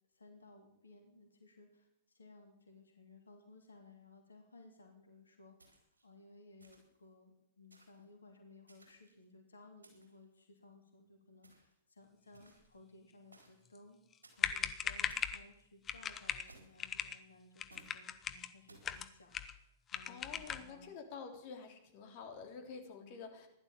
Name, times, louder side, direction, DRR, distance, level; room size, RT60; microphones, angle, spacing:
voice 1, 0.1-14.0 14.4-21.0, left 2 dB, 80° left, 4 dB, 3.0 m, -60 dB
sound 1, 5.6-6.1 6.6-7.0 7.7-8.1 8.7-9.2 9.8-10.2 11.4-11.8 12.3-12.8 13.3-13.7 14.2-14.6 15.1-15.4 16.5-16.9 17.7-18.0 18.7-19.0, right 2 dB, 85° right, 4.2 m, -63 dB
sound 2, 14.1-14.2 14.4-15.4 15.9-16.5 16.8-17.2 17.6-18.5 18.8-19.6 19.9-20.7, left 8 dB, 25° left, 1.1 m, -38 dB
voice 2, 20.0-23.5, left 5 dB, 45° left, 4 dB, 3.4 m, -49 dB
15.5 x 12.0 x 7.5 m, 0.75 s
figure-of-eight pair, 105°, 0 cm